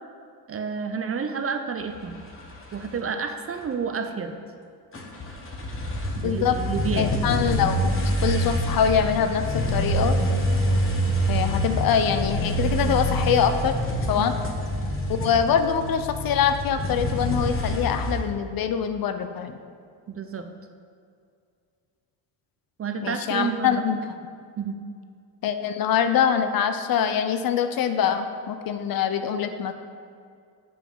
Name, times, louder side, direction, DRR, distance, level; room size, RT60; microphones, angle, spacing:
voice 1, 0.5-2.2 2.7-4.4 6.2-7.2 14.2-14.5 20.1-20.5 22.8-23.8 24.6-24.8, right 5 dB, 35° right, 7 dB, 0.6 m, -30 dB
sound 1, 1.8-2.9 3.6-3.7 4.9-18.2, equal, 30° left, 1.3 m, -26 dB
voice 2, 6.2-6.6 7.0-7.9 8.2-10.2 11.3-13.7 14.1-14.4 15.1-19.6 23.0-24.0 25.4-29.7, left 8 dB, 55° left, 9 dB, 0.6 m, -24 dB
7.1 x 6.1 x 5.5 m, 2.3 s
cardioid pair, 120°, 43 cm